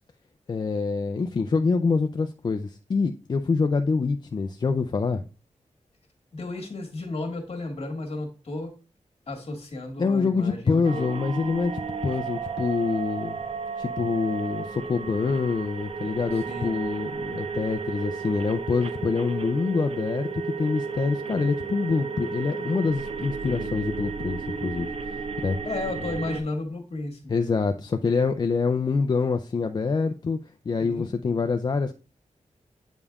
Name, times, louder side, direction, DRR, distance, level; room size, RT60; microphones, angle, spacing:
voice 1, 0.5-5.2 10.0-11.7 12.0-13.4 13.8-25.6 27.3-30.4 30.7-31.9, left 4 dB, 35° left, 0.4 m, -26 dB
voice 2, 6.3-8.7 9.3-11.2 12.3-12.4 16.5-16.8 23.5-23.7 25.6-27.6 30.8-31.1, left 2 dB, 55° left, 1.6 m, -34 dB
sound 1, 10.8-26.4, right 5 dB, 55° right, 0.4 m, -33 dB
8.2 x 5.3 x 2.3 m
wide cardioid pair, 165°, 13 cm